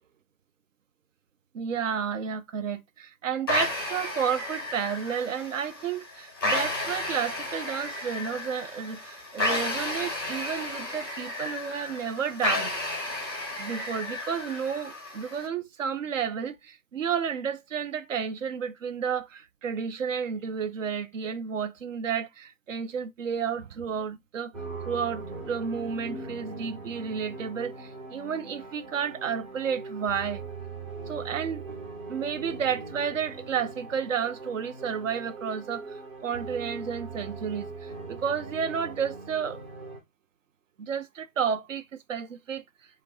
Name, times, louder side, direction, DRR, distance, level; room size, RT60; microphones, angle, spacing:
voice 1, 1.5-12.7 13.6-24.5 24.9-30.4 31.1-39.6 40.8-42.6, right 7 dB, 60° right, 0.5 m, -31 dB
sound 1, 3.5-15.5, left 2 dB, 15° left, 0.5 m, -32 dB
sound 2, 24.5-40.0, right 3 dB, 25° right, 0.7 m, -40 dB
2.4 x 2.1 x 3.6 m
hypercardioid pair, 155°, 43 cm